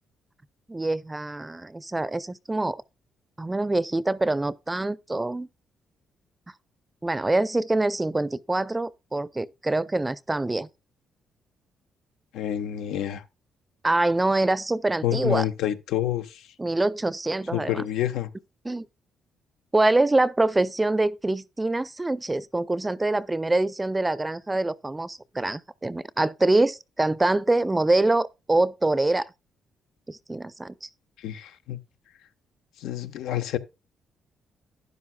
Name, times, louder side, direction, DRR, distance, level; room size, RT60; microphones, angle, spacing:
voice 1, 0.7-2.8 3.4-5.5 7.0-10.7 13.8-15.5 16.6-17.8 18.6-18.9 19.7-29.3 30.1-30.9, right 2 dB, 15° right, 0.5 m, -25 dB
voice 2, 12.3-13.2 15.0-16.5 17.5-18.3 31.2-31.8 32.8-33.6, left 12 dB, 90° left, 0.9 m, -28 dB
12.0 x 10.0 x 2.2 m
cardioid pair, 90°, 0 cm